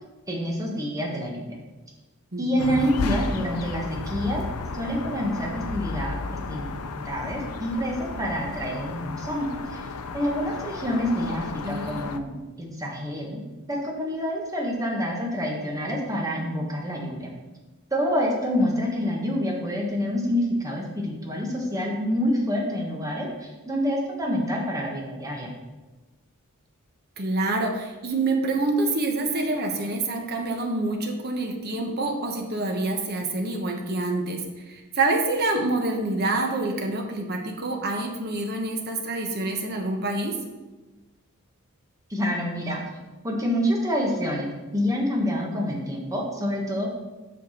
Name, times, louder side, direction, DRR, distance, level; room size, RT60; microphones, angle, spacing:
voice 1, 0.3-1.6 2.4-4.4 4.7-6.2 6.5-6.7 7.0-9.9 10.1-13.4 13.7-17.3 17.9-25.5 42.1-42.8 43.2-44.5 44.7-46.9, equal, 15° right, -1 dB, 1.3 m, -27 dB
voice 2, 2.3-2.9 11.6-12.0 27.2-34.4 34.7-40.4, right 2 dB, 45° right, 3 dB, 1.0 m, -27 dB
sound 1, 2.6-12.2, left 3 dB, 85° left, 0.5 m, -33 dB
7.7 x 5.8 x 4.3 m, 1.2 s
head